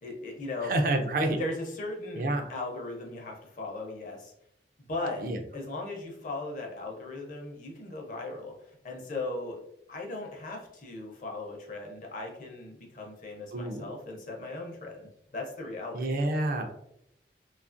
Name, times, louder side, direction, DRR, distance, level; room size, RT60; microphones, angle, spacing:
voice 1, 0.0-0.7 1.4-4.3 4.9-5.2 5.5-9.6 9.9-15.0 15.3-16.1, left 2 dB, 45° left, 0 dB, 0.6 m, -37 dB
voice 2, 0.6-1.4 2.2-2.5 5.2-5.4 13.5-13.9 15.9-16.7, right 2 dB, 50° right, 5 dB, 0.4 m, -28 dB
2.7 x 2.3 x 2.5 m, 0.75 s
head